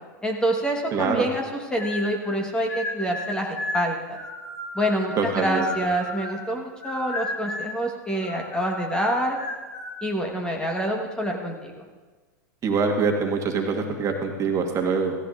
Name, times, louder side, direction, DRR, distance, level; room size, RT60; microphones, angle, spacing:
voice 1, 0.2-4.2 4.7-9.4 10.0-11.8, equal, 10° left, 1 dB, 1.4 m, -26 dB
voice 2, 0.9-1.3 5.2-5.7 12.6-15.1, right 5 dB, 30° right, 2 dB, 1.6 m, -24 dB
sound 1, 1.8-2.4 2.7-6.5 6.8-7.8 8.1-9.9, left 1 dB, 50° left, 4.2 m, -34 dB
16.0 x 14.0 x 2.6 m, 1.3 s
hypercardioid pair, 105°, 10 cm